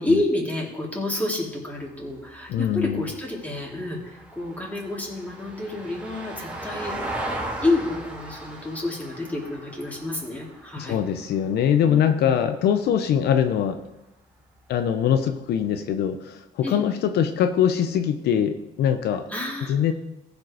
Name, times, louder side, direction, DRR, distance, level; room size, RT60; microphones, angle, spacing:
voice 1, 0.0-6.9 7.6-11.0 16.6-16.8 19.3-19.9, left 2 dB, 10° left, -3 dB, 3.5 m, -29 dB
Vehicle, 1.8-12.2 14.5-14.6, right 1 dB, 10° right, 2.8 m, -37 dB
voice 2, 2.5-3.0 10.8-13.8 14.7-19.2 19.7-19.9, left 9 dB, 75° left, 7 dB, 0.7 m, -22 dB
15.0 x 5.3 x 4.8 m, 0.91 s
cardioid pair, 75°, 17 cm